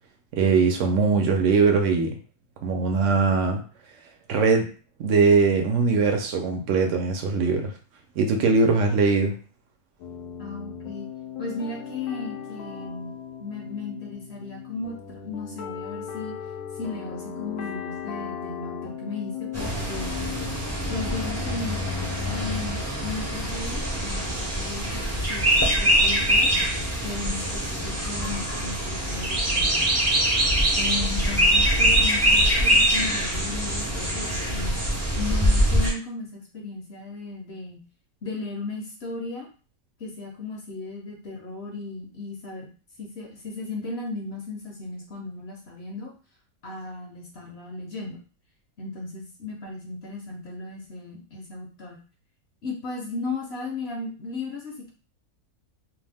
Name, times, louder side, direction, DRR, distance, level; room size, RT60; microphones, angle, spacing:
voice 1, 0.3-2.2 2.6-3.6 4.3-4.7 5.0-7.7 8.2-9.4, right 4 dB, 65° right, 4 dB, 0.9 m, -21 dB
sound 1, 10.0-22.7, left 8 dB, 85° left, 1.1 m, -37 dB
voice 2, 10.4-11.1 11.4-13.1 13.4-16.3 16.7-20.2 20.9-21.8 22.2-26.5 27.0-29.9 30.8-34.8 35.2-37.8 38.2-39.5 40.0-42.7 43.0-46.1 46.6-48.2 48.8-52.0 52.6-54.9, left 3 dB, 55° left, -1 dB, 0.8 m, -35 dB
sound 2, 19.5-35.9, right 1 dB, 20° right, 0.4 m, -23 dB
2.7 x 2.1 x 3.3 m, 0.38 s
omnidirectional pair, 1.5 m